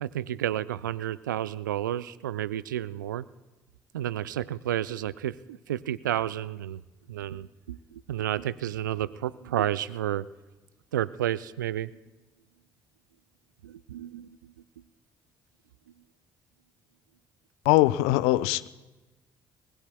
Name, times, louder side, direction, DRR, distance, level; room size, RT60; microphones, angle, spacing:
voice 1, 0.0-3.3 3.9-6.8 7.1-10.3 10.9-11.9 13.6-14.4, right 12 dB, 80° right, 19 dB, 0.4 m, -31 dB
voice 2, 17.6-18.7, left 17 dB, 70° left, 18 dB, 0.4 m, -22 dB
21.0 x 20.0 x 2.3 m, 1.2 s
figure-of-eight pair, 45°, 10 cm